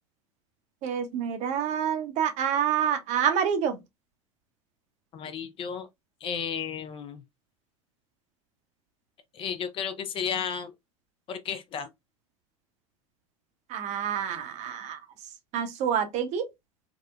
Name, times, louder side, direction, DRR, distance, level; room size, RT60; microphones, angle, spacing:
voice 1, 0.8-3.8 13.7-15.0 15.5-16.4, right 8 dB, 40° right, 0.7 m, -27 dB
voice 2, 5.1-5.9 6.2-7.2 9.3-10.7 11.3-11.9, left 7 dB, 30° left, 0.5 m, -33 dB
3.6 x 2.1 x 2.3 m
figure-of-eight pair, 80°, 18 cm